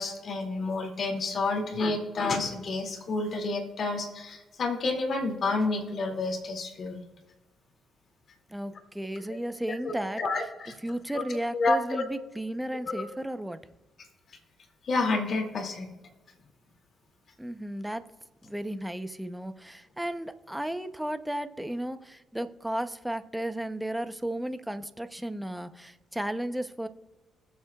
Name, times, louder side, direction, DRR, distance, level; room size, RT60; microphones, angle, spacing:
voice 1, 0.0-7.0 9.8-10.8 11.5-12.0 12.8-13.0 14.8-15.9, left 3 dB, 50° left, 3 dB, 2.3 m, -29 dB
voice 2, 8.5-10.2 10.8-13.6 17.4-18.0 18.4-26.9, right 1 dB, 5° right, 10 dB, 0.7 m, -34 dB
20.5 x 7.6 x 2.3 m, 1.2 s
cardioid pair, 90°, 0 cm